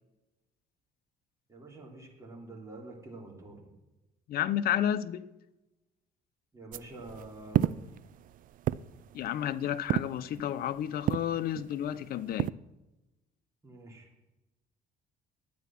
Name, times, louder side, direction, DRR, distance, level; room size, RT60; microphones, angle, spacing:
voice 1, 1.5-3.6 6.5-8.0 13.6-14.1, right 2 dB, 20° right, 3.5 m, -47 dB
voice 2, 4.3-5.3 9.1-12.5, left 10 dB, 60° left, 0.7 m, -31 dB
sound 1, 6.7-12.5, right 12 dB, 55° right, 0.4 m, -34 dB
11.5 x 9.4 x 5.9 m
cardioid pair, 110°, 17 cm